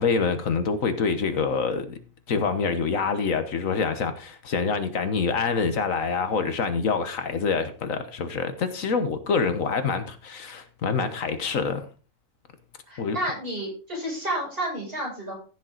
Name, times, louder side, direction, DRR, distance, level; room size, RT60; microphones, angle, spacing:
voice 1, 0.0-2.0 2.3-11.8 13.0-13.2, left 5 dB, 75° left, 1.5 m, -26 dB
voice 2, 12.9-15.3, right 1 dB, 45° right, 7.4 m, -30 dB
15.0 x 7.2 x 3.9 m
omnidirectional pair, 1.4 m